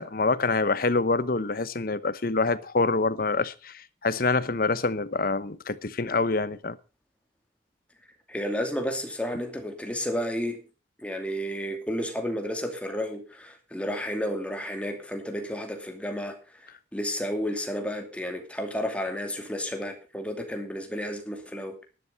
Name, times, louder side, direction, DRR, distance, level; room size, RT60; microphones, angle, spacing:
voice 1, 0.0-6.8, left 3 dB, 50° left, 0.9 m, -26 dB
voice 2, 8.3-10.6 11.0-21.8, equal, 5° left, 2.5 m, -32 dB
12.0 x 11.0 x 5.5 m
head